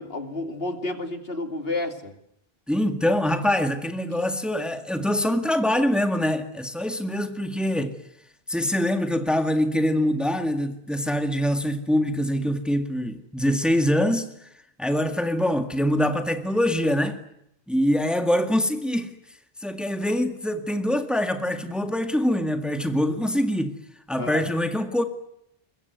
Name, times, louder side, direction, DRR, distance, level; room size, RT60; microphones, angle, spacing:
voice 1, 0.0-2.1 24.2-24.4, left 2 dB, 70° left, 2.8 m, -30 dB
voice 2, 2.7-8.0 8.5-14.5 14.8-17.2 17.7-19.2 19.6-23.8 24.1-25.0, left 1 dB, ahead, 1.9 m, -24 dB
23.0 x 22.0 x 9.5 m
omnidirectional pair, 1.0 m